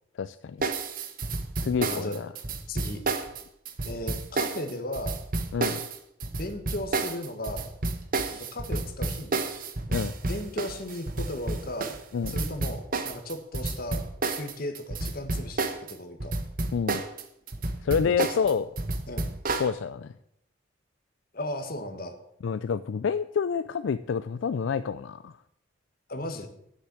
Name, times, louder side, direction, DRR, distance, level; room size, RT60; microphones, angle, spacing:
voice 1, 0.2-0.6 1.6-2.3 5.5-5.8 9.9-10.1 12.1-12.3 16.7-17.0 17.8-18.7 19.6-20.1 22.4-25.3, left 6 dB, 75° left, 13 dB, 0.4 m, -28 dB
sound 1, 0.6-15.9 16.2-19.7, right 3 dB, 45° right, 1.0 m, -30 dB
voice 2, 1.8-2.1 2.7-3.0 3.8-5.2 6.4-7.7 8.3-9.5 10.2-11.9 12.3-14.0 14.3-16.3 18.0-18.4 19.1-19.3 21.3-22.2 26.1-26.5, left 1 dB, 50° left, 7 dB, 1.4 m, -36 dB
10.0 x 6.8 x 7.7 m, 0.76 s
head